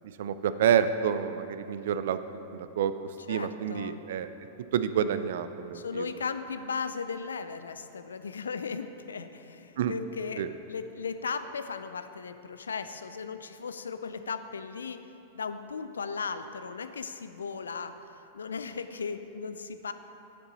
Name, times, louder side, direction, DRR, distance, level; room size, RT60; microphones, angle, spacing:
voice 1, 0.2-2.2 2.5-4.3 4.7-6.0 9.8-9.9 10.4-10.5, right 8 dB, 65° right, 12 dB, 0.3 m, -28 dB
voice 2, 3.3-4.0 5.7-15.0 15.3-17.9 18.3-19.9, left 5 dB, 80° left, 10 dB, 0.4 m, -36 dB
7.9 x 6.8 x 4.1 m, 2.9 s
figure-of-eight pair, 95°, 0 cm